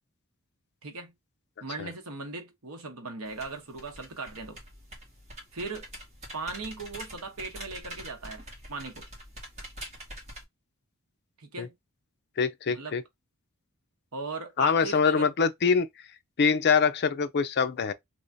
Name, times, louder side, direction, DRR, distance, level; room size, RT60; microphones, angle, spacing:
voice 1, 0.8-1.1 1.6-4.6 5.5-5.9 6.3-9.1 11.4-11.7 12.7-13.0 14.1-15.3, right 3 dB, 70° right, 1.0 m, -38 dB
sound 1, 3.2-10.4, right 1 dB, 30° right, 1.7 m, -45 dB
voice 2, 12.4-13.0 14.6-15.9 16.4-17.9, left 5 dB, 50° left, 0.5 m, -24 dB
3.5 x 3.0 x 2.6 m
head